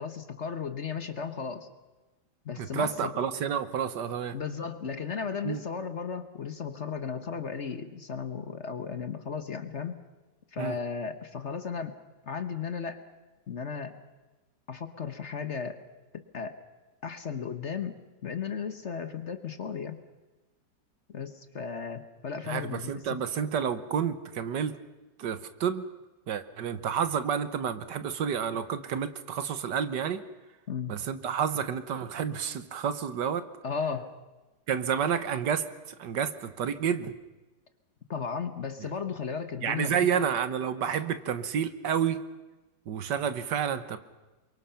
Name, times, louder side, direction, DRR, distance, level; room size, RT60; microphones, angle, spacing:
voice 1, 0.0-1.7 2.4-3.1 4.3-10.0 10.5-11.9 12.3-13.0 13.5-14.0 14.7-15.8 16.1-16.6 17.0-20.0 21.1-23.2 30.7-30.9 33.6-34.1 38.1-40.2, left 6 dB, 45° left, 9 dB, 1.3 m, -35 dB
voice 2, 2.6-4.4 5.4-5.6 10.6-10.8 22.5-24.8 25.2-25.9 26.3-30.2 30.9-33.5 34.7-35.7 36.0-37.1 39.6-42.2 42.9-44.0, right 8 dB, 70° right, 12 dB, 1.7 m, -30 dB
28.5 x 23.5 x 5.8 m, 1.1 s
omnidirectional pair, 1.9 m